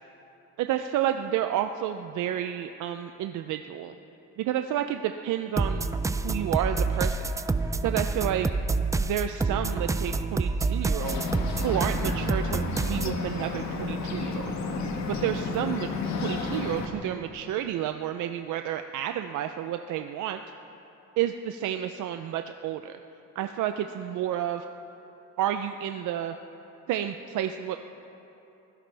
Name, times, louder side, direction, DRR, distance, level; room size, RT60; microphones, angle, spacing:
voice 1, 0.6-4.0 4.4-7.3 7.8-8.5 8.9-11.3 11.6-14.5 15.1-15.9 16.2-20.4 21.2-23.0 23.4-24.7 25.4-26.3 26.9-27.8, right 11 dB, 70° right, 7 dB, 0.6 m, -30 dB
sound 1, 5.6-13.2, right 3 dB, 10° right, 0.3 m, -28 dB
Bird, 11.0-16.9, left 3 dB, 60° left, 1.9 m, -32 dB
24.0 x 16.5 x 3.4 m, 3.0 s
cardioid pair, 120°, 31 cm